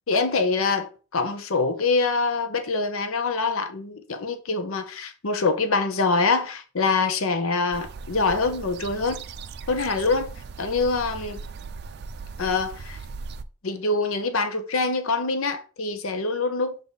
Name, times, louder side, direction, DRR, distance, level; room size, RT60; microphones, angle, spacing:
voice 1, 0.1-9.2 9.7-11.4 12.4-13.0 13.6-16.8, left 3 dB, 80° left, 0.8 m, -25 dB
sound 1, 7.7-13.4, right 4 dB, 50° right, 0.4 m, -38 dB
6.6 x 3.6 x 4.1 m
head